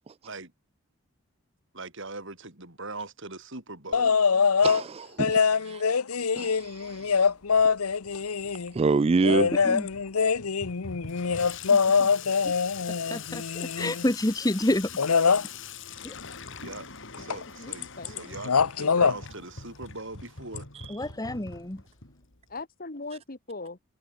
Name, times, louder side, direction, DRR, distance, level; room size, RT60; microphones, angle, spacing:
voice 1, 1.7-4.2 16.6-16.9 17.2-20.7, right 3 dB, 55° right, 5.5 m, -41 dB
sound 1, 3.9-4.8 5.2-8.7 9.2-14.1 15.0-15.5 17.3-17.4 17.7-18.2 18.4-19.2 20.6-20.7, left 5 dB, 85° left, 0.8 m, -24 dB
voice 2, 4.0-4.5 17.6-18.4 22.5-23.8, left 3 dB, 40° left, 1.6 m, -40 dB
voice 3, 4.6-5.4 5.7-5.8 6.4-6.7 8.7-9.5, right 4 dB, 25° right, 0.3 m, -25 dB
Water tap faucet / Sink (filling or washing), 6.6-22.6, left 6 dB, 60° left, 4.0 m, -44 dB
voice 4, 11.7-12.1 12.4-12.5 13.1-14.9 16.0-16.1 20.9-21.8, left 1 dB, 15° left, 1.2 m, -29 dB
head